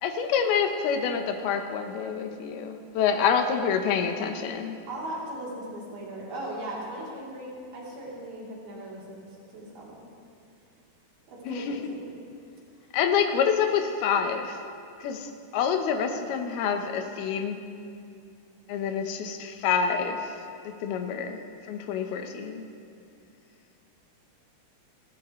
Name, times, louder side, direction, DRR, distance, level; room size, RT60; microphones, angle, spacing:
voice 1, 0.0-4.8 11.5-11.7 12.9-14.6 15.0-15.3 15.5-17.6 18.7-20.3 20.6-21.4 21.7-22.6, left 7 dB, 85° left, 6 dB, 3.0 m, -27 dB
voice 2, 4.9-9.9 11.3-12.1, right 1 dB, 75° right, -5 dB, 5.2 m, -38 dB
29.5 x 14.5 x 3.2 m, 2.5 s
omnidirectional pair, 4.4 m